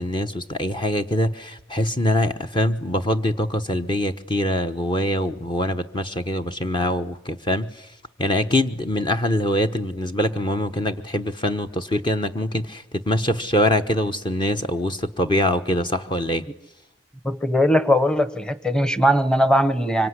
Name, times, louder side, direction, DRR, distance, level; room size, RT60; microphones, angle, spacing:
voice 1, 0.0-7.9 8.2-16.4, left 1 dB, 25° left, 7 dB, 1.1 m, -23 dB
voice 2, 17.2-20.1, equal, 5° left, 13 dB, 1.2 m, -19 dB
25.0 x 24.5 x 9.7 m, 0.85 s
head